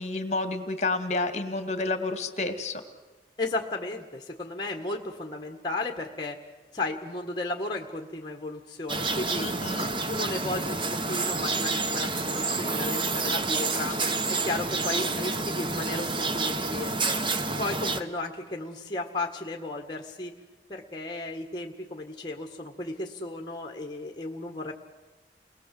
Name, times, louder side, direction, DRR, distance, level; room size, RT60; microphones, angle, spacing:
voice 1, 0.0-2.8 9.4-9.9 13.8-14.0 14.3-14.4, left 3 dB, 40° left, 8 dB, 2.1 m, -30 dB
voice 2, 3.4-6.4 6.7-14.0 14.3-17.2 17.6-20.4 20.7-24.7, left 2 dB, 25° left, 2 dB, 1.8 m, -34 dB
sound 1, 8.9-18.0, right 3 dB, 30° right, 1.1 m, -29 dB
29.5 x 21.0 x 7.8 m, 1.2 s
head